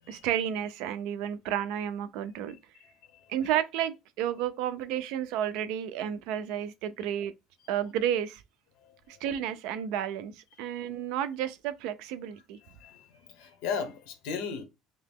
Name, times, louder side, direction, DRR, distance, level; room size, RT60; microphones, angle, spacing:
voice 1, 0.1-2.5 3.3-7.3 7.7-8.4 9.1-12.6, right 10 dB, 70° right, 0.4 m, -31 dB
voice 2, 2.5-3.3 8.8-9.2 12.6-14.6, left 6 dB, 85° left, 0.9 m, -38 dB
3.0 x 2.8 x 3.5 m
cardioid pair, 180°, 0 cm